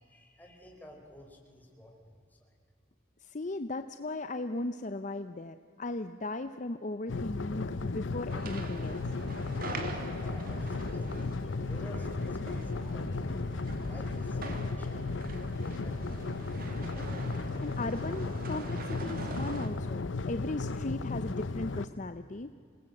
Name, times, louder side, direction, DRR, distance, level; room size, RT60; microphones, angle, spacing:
voice 1, 0.0-2.5 10.1-11.3 11.7-15.1 15.6-16.3, equal, 10° left, 0 dB, 4.1 m, -52 dB
voice 2, 3.2-9.0 17.5-22.5, left 2 dB, 40° left, 9 dB, 0.7 m, -37 dB
sound 1, 7.1-21.9, left 3 dB, 90° left, 0.8 m, -35 dB
sound 2, 8.3-19.7, right 2 dB, 50° right, 2.4 m, -45 dB
sound 3, 10.0-16.1, equal, 70° left, 5.5 m, -43 dB
27.5 x 19.0 x 7.7 m, 2.2 s
head